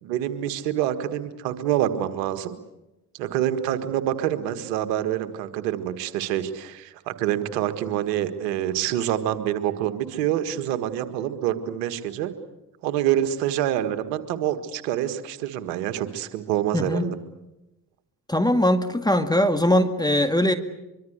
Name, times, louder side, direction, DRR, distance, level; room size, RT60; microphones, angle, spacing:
voice 1, 0.0-2.5 3.1-12.3 12.8-17.2, right 11 dB, 80° right, 10 dB, 1.8 m, -26 dB
voice 2, 16.7-17.2 18.3-20.5, left 1 dB, 10° left, 8 dB, 2.0 m, -21 dB
24.5 x 24.0 x 8.2 m, 0.96 s
hypercardioid pair, 45°, 48 cm